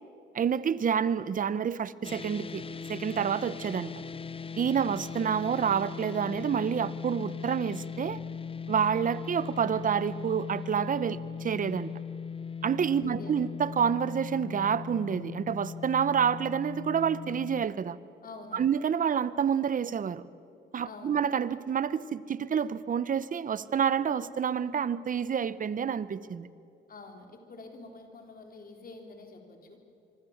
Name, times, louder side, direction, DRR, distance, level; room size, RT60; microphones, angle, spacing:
voice 1, 0.3-2.6 2.9-3.9 4.6-8.2 8.7-11.9 12.6-18.0 18.5-20.2 20.7-26.5, right 7 dB, 45° right, 17 dB, 0.9 m, -28 dB
sound 1, 2.0-17.7, left 6 dB, 30° left, 0.7 m, -39 dB
voice 2, 13.0-13.4 18.2-18.8 20.8-21.2 26.9-29.8, left 3 dB, 45° left, 3 dB, 3.7 m, -47 dB
25.0 x 24.5 x 7.3 m, 2.6 s
cardioid pair, 90°, 20 cm